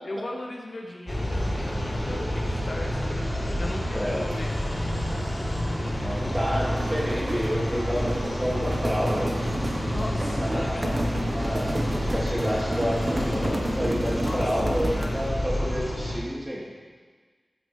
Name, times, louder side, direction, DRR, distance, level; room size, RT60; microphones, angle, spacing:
voice 1, 0.0-4.6 9.9-11.0 14.2-14.5 14.8-15.3, left 1 dB, 45° left, 0 dB, 1.0 m, -37 dB
sound 1, 1.1-16.2, equal, 15° left, 3.0 m, -28 dB
voice 2, 3.9-4.4 6.0-9.4 10.4-11.0 11.2-11.7 12.1-16.7, equal, 20° right, -6 dB, 2.9 m, -29 dB
sound 2, 6.6-15.3, right 1 dB, 40° right, 1.0 m, -33 dB
14.0 x 7.8 x 3.2 m, 1.5 s
wide cardioid pair, 80°, 0 cm